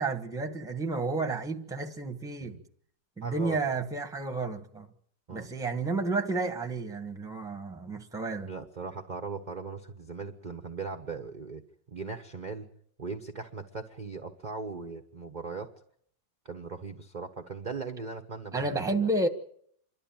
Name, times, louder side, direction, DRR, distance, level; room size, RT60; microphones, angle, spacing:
voice 1, 0.0-2.6 3.2-4.9 5.3-8.5 18.5-19.3, right 3 dB, ahead, 5 dB, 1.2 m, -31 dB
voice 2, 3.2-3.6 5.3-5.5 8.4-11.6 11.9-12.7 13.0-15.7 16.4-19.1, right 4 dB, 35° right, 5 dB, 1.0 m, -39 dB
27.5 x 12.0 x 8.9 m, 0.67 s
omnidirectional pair, 1.8 m